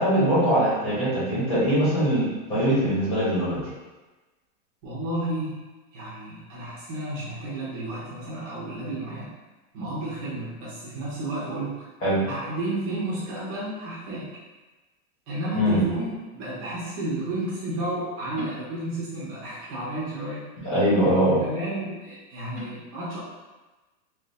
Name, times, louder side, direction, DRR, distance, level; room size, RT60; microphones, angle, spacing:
voice 1, 0.0-3.6 12.0-12.2 15.6-15.8 20.6-21.4, right 1 dB, 10° left, -10 dB, 0.6 m, -22 dB
voice 2, 4.8-5.6 5.9-9.3 9.7-11.8 12.2-14.3 15.3-20.5 21.1-23.2, right 1 dB, 25° right, -7 dB, 0.8 m, -32 dB
3.3 x 3.0 x 2.5 m, 1.2 s
supercardioid pair, 175°, 44 cm